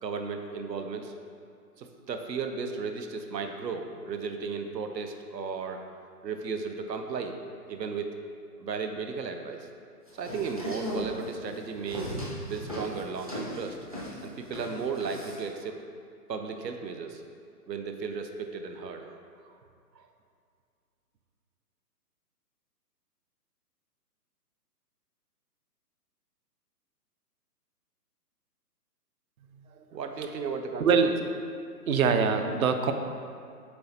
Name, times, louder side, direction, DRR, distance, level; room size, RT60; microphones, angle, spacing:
voice 1, 0.0-1.1 1.8-5.8 6.2-7.4 7.7-8.1 8.6-9.7 10.1-12.1 12.4-13.9 14.2-15.8 16.3-17.2 17.7-19.5 20.0-20.1 29.9-31.1, right 5 dB, 90° right, 6 dB, 0.8 m, -35 dB
sound 1, 10.1-15.5, equal, 25° right, 0.4 m, -37 dB
voice 2, 30.8-31.2 31.9-32.9, right 5 dB, 60° right, 7 dB, 0.7 m, -24 dB
7.7 x 3.4 x 4.2 m, 2.3 s
hypercardioid pair, 160°, 49 cm